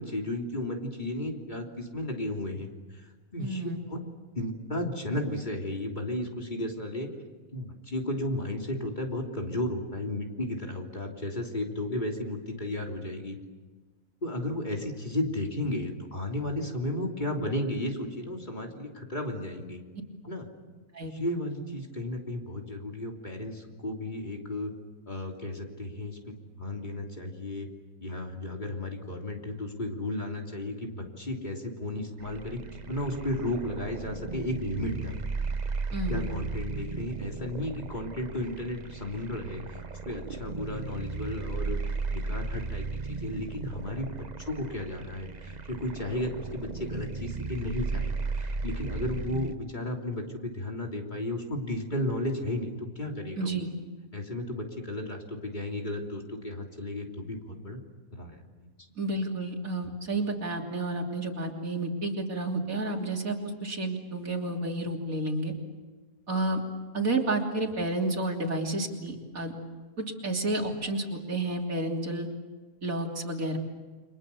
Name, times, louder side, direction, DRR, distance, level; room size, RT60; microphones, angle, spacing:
voice 1, 0.0-3.1 3.3-4.0 4.4-7.1 7.5-13.4 14.2-19.8 20.2-20.5 21.1-24.7 25.1-27.7 28.0-35.2 35.9-44.1 44.4-53.6 54.1-57.8 58.1-58.7, left 1 dB, 30° left, 1 dB, 3.4 m, -34 dB
voice 2, 3.4-3.8 20.9-21.1 35.9-36.3 53.4-53.7 59.0-65.5 66.3-66.6 66.9-69.6 70.0-72.3 72.8-73.6, right 2 dB, 70° right, 1 dB, 3.5 m, -31 dB
sound 1, 32.2-49.6, right 4 dB, 35° right, 1.0 m, -35 dB
29.5 x 26.0 x 7.1 m, 1.3 s
omnidirectional pair, 1.5 m